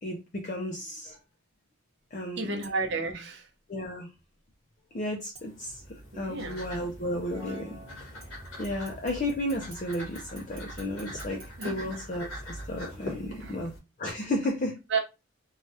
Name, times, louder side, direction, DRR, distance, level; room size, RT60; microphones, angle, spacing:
voice 1, 0.0-1.2 2.1-2.7 3.7-4.1 4.9-8.2 8.6-13.7 14.0-14.7, left 1 dB, 40° left, 0.5 m, -33 dB
voice 2, 2.4-3.4 6.1-6.6 11.6-11.7 13.4-13.5 14.9-15.0, right 4 dB, 55° right, 0.7 m, -31 dB
sound 1, 2.6-3.1 5.3-6.1 8.2-12.6 13.0-13.1, right 2 dB, 15° right, 1.4 m, -54 dB
sound 2, 5.3-13.8, equal, 85° left, 1.2 m, -43 dB
sound 3, 7.0-10.6, right 2 dB, 65° left, 1.0 m, -51 dB
3.2 x 2.3 x 2.7 m
head